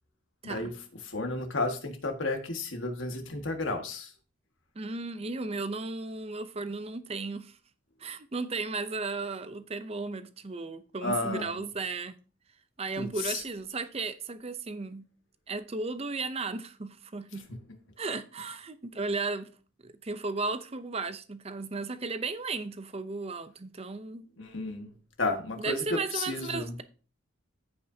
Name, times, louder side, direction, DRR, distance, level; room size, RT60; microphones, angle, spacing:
voice 1, 1.0-4.1 11.0-11.5 13.0-13.4 24.4-24.9 25.2-26.7, left 2 dB, 70° left, 1.7 m, -32 dB
voice 2, 4.8-7.6 8.0-12.1 12.8-15.1 15.5-17.5 18.0-19.5 19.8-24.3 25.6-26.8, right 3 dB, 30° right, 0.6 m, -35 dB
14.5 x 5.4 x 2.8 m
head